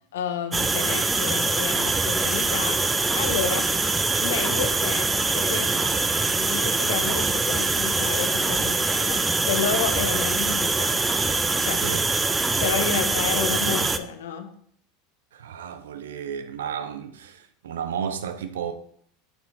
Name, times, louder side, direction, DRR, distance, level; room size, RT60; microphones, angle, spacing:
voice 1, 0.1-2.8 3.1-3.7 4.2-5.8 6.4-11.0 11.3-11.8 12.6-14.5, left 7 dB, 75° left, 0.8 m, -30 dB
sound 1, 0.5-14.0, right 3 dB, 15° right, 0.4 m, -23 dB
voice 2, 15.3-18.7, right 8 dB, 75° right, 0.6 m, -33 dB
7.8 x 4.4 x 2.7 m
hypercardioid pair, 85°, 0 cm